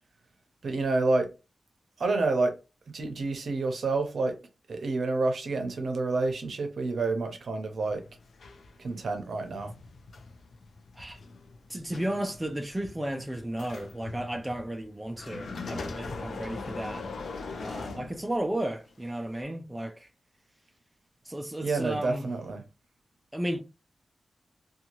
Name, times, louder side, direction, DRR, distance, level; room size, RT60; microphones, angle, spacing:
voice 1, 0.6-1.3 2.0-2.5 2.9-4.4 4.7-8.0 8.8-9.7 21.6-22.6, right 3 dB, 70° right, 0.6 m, -28 dB
sound 1, 7.8-18.6 19.3-19.4, left 3 dB, 85° left, 0.4 m, -41 dB
voice 2, 11.7-17.1 17.6-20.1 21.3-22.3 23.3-23.6, right 1 dB, 10° right, 0.3 m, -34 dB
2.7 x 2.3 x 2.9 m
wide cardioid pair, 130°, 0 cm